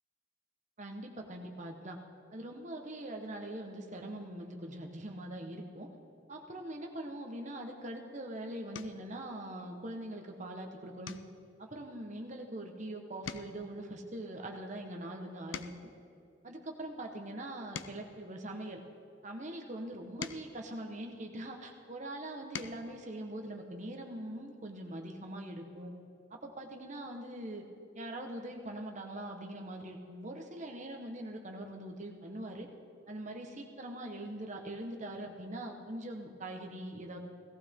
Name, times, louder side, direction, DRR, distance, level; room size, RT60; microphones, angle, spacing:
voice 1, 0.8-2.0 2.3-5.9 6.3-11.2 11.6-15.9 16.4-18.8 19.2-25.9 26.3-27.6 27.9-32.7 33.1-37.2, right 1 dB, 40° right, 2 dB, 1.3 m, -42 dB
sound 1, 7.9-8.1 8.7-9.1 9.6-10.0 10.3-10.5 11.0-12.8 13.1-16.0 16.7-19.1 19.8-21.6 22.2-22.9 24.3-24.4 24.7-24.9, left 6 dB, 80° left, 0.5 m, -48 dB
17.5 x 14.5 x 3.8 m, 2.5 s
head